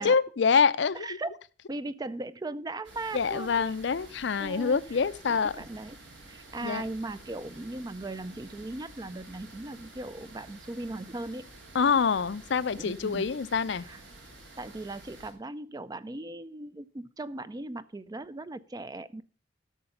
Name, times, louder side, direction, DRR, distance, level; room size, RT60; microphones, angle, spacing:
voice 1, 0.0-1.2 3.1-5.5 6.6-6.8 11.7-13.9, left 5 dB, 65° left, 0.5 m, -26 dB
voice 2, 0.9-1.3 1.7-3.7 4.4-5.0 5.5-6.0 6.3-11.5 12.8-13.3 13.7-14.0 14.6-19.2, right 2 dB, 20° right, 0.4 m, -38 dB
sound 1, 2.8-15.3, right 2 dB, 75° right, 3.2 m, -50 dB
12.0 x 6.7 x 5.6 m
head